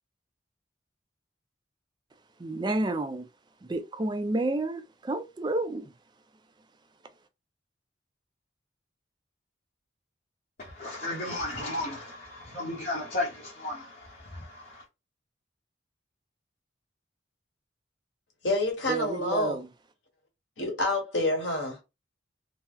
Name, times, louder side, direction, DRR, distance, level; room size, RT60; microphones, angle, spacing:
voice 1, 2.4-3.3 3.6-5.9 18.9-19.7, right 2 dB, 25° right, 0.4 m, -30 dB
voice 2, 10.6-14.8, left 2 dB, 45° left, 0.9 m, -34 dB
voice 3, 18.4-19.6 20.6-21.8, left 1 dB, 70° left, 1.3 m, -28 dB
2.9 x 2.0 x 3.6 m
head